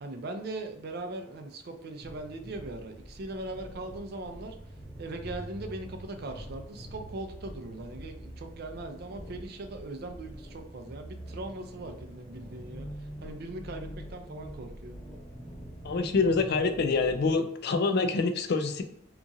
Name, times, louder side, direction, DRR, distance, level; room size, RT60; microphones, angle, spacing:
voice 1, 0.0-4.6 5.0-12.9 13.2-15.0, right 2 dB, 50° right, 6 dB, 0.4 m, -40 dB
sound 1, 2.0-17.3, equal, 15° left, 0.7 m, -45 dB
voice 2, 15.8-18.8, left 4 dB, 55° left, 7 dB, 0.3 m, -26 dB
2.9 x 2.4 x 2.5 m, 0.74 s
head